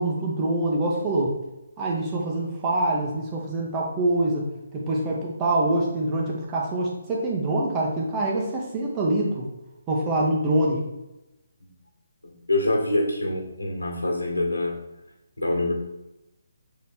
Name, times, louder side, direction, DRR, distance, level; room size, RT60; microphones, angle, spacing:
voice 1, 0.0-1.4 1.8-9.5 9.9-10.8, right 1 dB, 20° right, -3 dB, 1.5 m, -25 dB
voice 2, 12.2-14.8 15.4-15.7, left 2 dB, 85° left, 1 dB, 2.1 m, -25 dB
6.5 x 4.1 x 4.4 m, 0.96 s
figure-of-eight pair, 145°, 0 cm